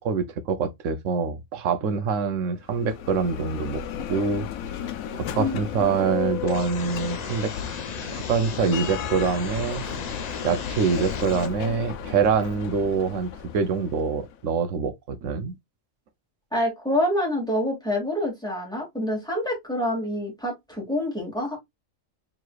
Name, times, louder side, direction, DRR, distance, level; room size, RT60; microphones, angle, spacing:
voice 1, 0.0-3.8 4.1-4.5 4.8-4.9 5.1-7.5 8.1-9.8 10.4-15.5, right 5 dB, 70° right, 1.1 m, -25 dB
Bell, 2.6-14.4, left 8 dB, 90° left, 1.1 m, -35 dB
voice 2, 5.4-6.3 16.5-21.6, left 1 dB, 5° left, 2.5 m, -27 dB
sound 1, 6.5-11.5, left 6 dB, 55° left, 0.4 m, -35 dB
4.6 x 3.8 x 2.3 m
omnidirectional pair, 1.4 m